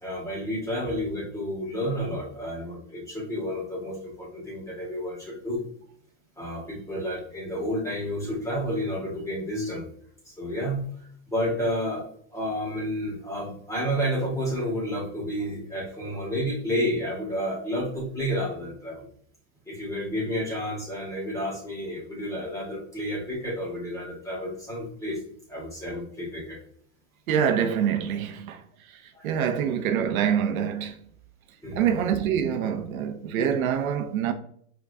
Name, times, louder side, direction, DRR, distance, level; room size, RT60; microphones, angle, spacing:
voice 1, 0.0-5.6 6.4-9.9 10.3-12.1 12.3-19.1 19.7-25.2 25.5-26.6 29.1-29.3 31.6-31.9, equal, 10° left, 1.8 m, -30 dB
voice 2, 27.3-28.6 28.9-29.0 29.2-31.0 31.8-34.3, right 8 dB, 85° right, 0.8 m, -25 dB
5.1 x 3.8 x 2.7 m
supercardioid pair, 135°, 41 cm